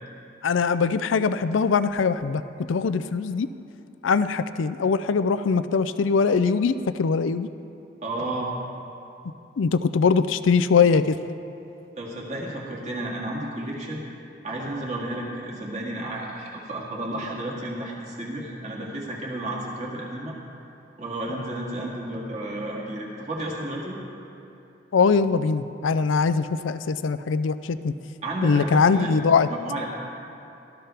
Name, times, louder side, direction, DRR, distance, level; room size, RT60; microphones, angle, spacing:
voice 1, 0.4-2.4 2.7-3.5 4.0-7.5 9.6-11.2 24.9-27.9 28.4-29.5, left 5 dB, 80° left, 13 dB, 0.4 m, -22 dB
voice 2, 8.0-8.5 12.0-14.0 14.4-20.4 21.0-24.0 28.2-29.1 29.5-29.9, right 1 dB, 35° right, -3 dB, 2.1 m, -32 dB
18.0 x 12.5 x 3.4 m, 2.9 s
head